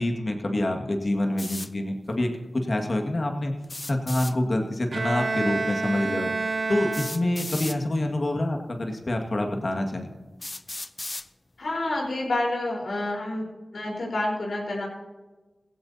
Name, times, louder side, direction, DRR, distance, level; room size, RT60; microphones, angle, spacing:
voice 1, 0.0-3.5 3.9-6.3 6.7-10.1, left 1 dB, 50° left, 3 dB, 1.9 m, -26 dB
sound 1, 1.4-1.7 3.6-4.3 5.8-5.9 6.9-7.8 8.8-8.9 9.6-9.7 10.4-11.3, left 2 dB, 35° left, 0.5 m, -35 dB
Bowed string instrument, 4.9-7.6, right 3 dB, 60° right, 0.4 m, -29 dB
voice 2, 11.6-13.4 13.7-14.9, left 2 dB, 80° left, -2 dB, 4.2 m, -28 dB
17.0 x 16.5 x 2.8 m, 1.2 s
cardioid pair, 55°, 0 cm